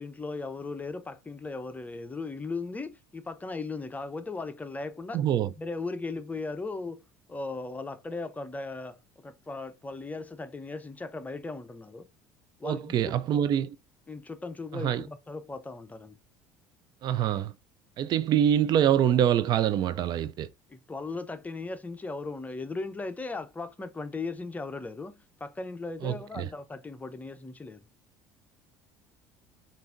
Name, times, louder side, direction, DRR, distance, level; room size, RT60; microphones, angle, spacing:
voice 1, 0.0-5.2 5.6-7.0 7.3-12.1 12.6-13.4 14.1-16.2 20.7-27.9, left 3 dB, 15° left, 0.7 m, -37 dB
voice 2, 5.1-5.5 12.6-13.8 14.8-15.0 17.0-17.5 18.0-20.5 26.0-26.5, right 10 dB, 50° right, 0.4 m, -25 dB
5.5 x 2.6 x 2.6 m
hypercardioid pair, 75°, 9 cm